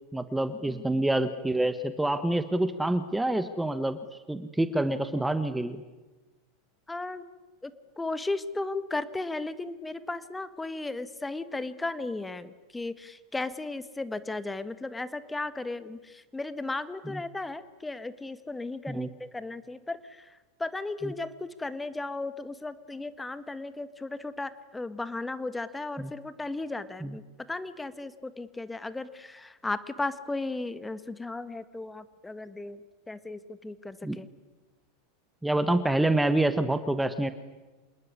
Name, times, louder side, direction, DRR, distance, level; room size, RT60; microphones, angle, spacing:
voice 1, 0.1-4.0 4.3-5.8 17.1-17.2 18.9-19.1 21.0-21.1 26.0-26.1 27.0-27.2 34.0-34.2 35.4-37.3, right 1 dB, 5° right, 12 dB, 1.4 m, -27 dB
voice 2, 0.7-1.0 6.9-7.2 7.6-7.7 8.0-32.8 33.1-34.3, left 2 dB, 10° left, 14 dB, 1.6 m, -35 dB
27.0 x 20.5 x 9.8 m, 1.2 s
hypercardioid pair, 90°, 0 cm